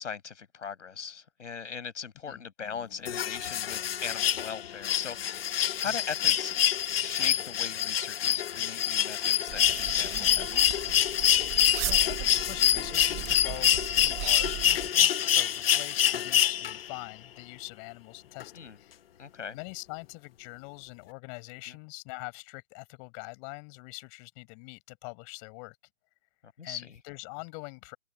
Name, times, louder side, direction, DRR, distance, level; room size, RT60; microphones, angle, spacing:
voice 1, 0.0-5.4 5.8-6.5 6.9-10.7 18.5-18.8 19.2-19.6 21.7-21.8 26.6-27.0, left 6 dB, 80° left, 6.1 m, -39 dB
sound 1, 3.1-17.0 18.4-18.5, left 10 dB, 50° left, 1.4 m, -26 dB
sound 2, 9.5-14.9, right 18 dB, 15° right, 1.3 m, -38 dB
voice 2, 11.4-18.5 18.8-19.0 19.5-25.8 26.6-28.0, left 36 dB, 25° left, 6.2 m, -44 dB
hypercardioid pair, 155°, 36 cm